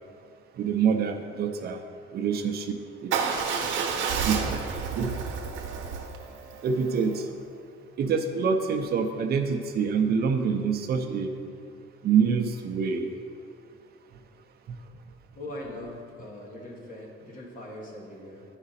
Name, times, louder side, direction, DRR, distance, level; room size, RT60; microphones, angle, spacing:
voice 1, 0.6-1.8 2.1-2.8 3.0-3.1 4.2-4.6 5.0-5.1 6.6-7.2 8.0-11.3 12.0-13.1, right 6 dB, 50° right, 4 dB, 0.6 m, -26 dB
Motorcycle / Engine starting / Idling, 3.1-7.2, right 6 dB, 80° right, 0.9 m, -30 dB
voice 2, 15.3-18.4, left 1 dB, 40° left, -2 dB, 1.6 m, -41 dB
10.5 x 4.9 x 4.2 m, 2.3 s
cardioid pair, 155°, 20 cm